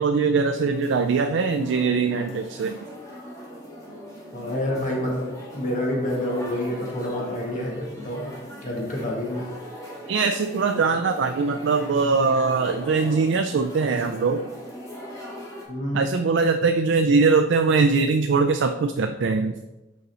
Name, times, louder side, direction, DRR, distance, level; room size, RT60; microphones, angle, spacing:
voice 1, 0.0-2.8 10.1-14.5 15.9-19.6, right 4 dB, 65° right, 7 dB, 0.4 m, -21 dB
sound 1, 0.5-15.6, equal, 20° left, 2.1 m, -40 dB
voice 2, 4.3-8.3 8.6-9.5 15.7-16.1, left 1 dB, 45° left, -2 dB, 1.8 m, -28 dB
6.4 x 5.5 x 4.2 m, 1.0 s
head